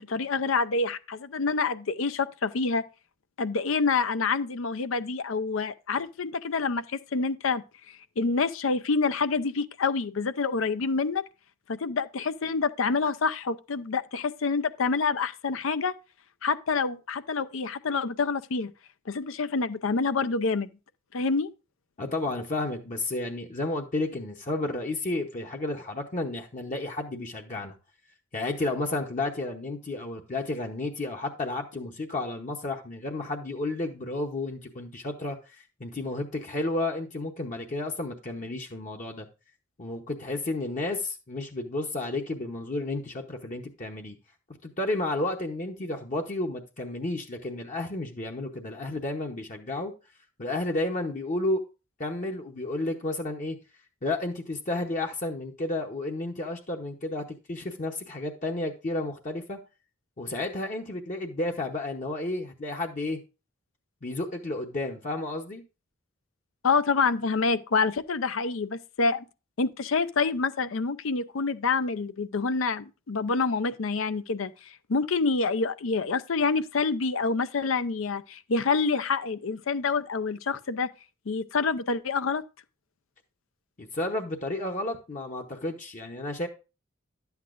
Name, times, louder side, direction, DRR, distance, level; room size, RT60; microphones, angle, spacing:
voice 1, 0.0-2.8 3.4-7.6 8.2-11.2 11.7-15.9 16.4-18.7 19.1-20.7 21.1-21.5 66.6-69.2 69.6-80.9 81.3-82.4, left 4 dB, 80° left, 0.6 m, -27 dB
voice 2, 22.0-27.8 28.3-39.3 39.8-44.2 44.6-49.9 50.4-51.6 52.0-53.6 54.0-59.6 60.2-63.2 64.0-65.6 83.8-86.5, left 2 dB, 40° left, 0.8 m, -32 dB
11.0 x 8.1 x 2.5 m
head